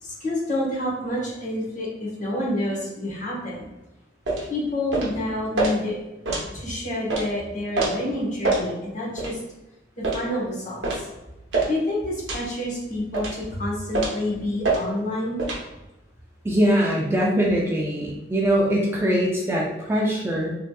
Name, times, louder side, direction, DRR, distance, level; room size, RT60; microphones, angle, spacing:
voice 1, 0.0-3.7 4.5-6.0 6.5-9.4 10.0-11.1 11.7-15.4, left 1 dB, 45° left, -5 dB, 1.1 m, -28 dB
sound 1, 4.3-4.5 4.9-5.1 5.6-5.7 6.2-6.5 7.1-7.2 7.7-7.9 8.4-8.6 9.2-9.3 10.0-10.2 10.8-11.0 11.5-11.7 12.3-12.5 13.1-13.4 13.9-14.2 14.6-14.8 15.4-15.6, right 3 dB, 85° right, 0.7 m, -24 dB
voice 2, 16.4-20.5, equal, 15° right, -3 dB, 0.3 m, -22 dB
3.2 x 2.8 x 2.2 m, 0.99 s
head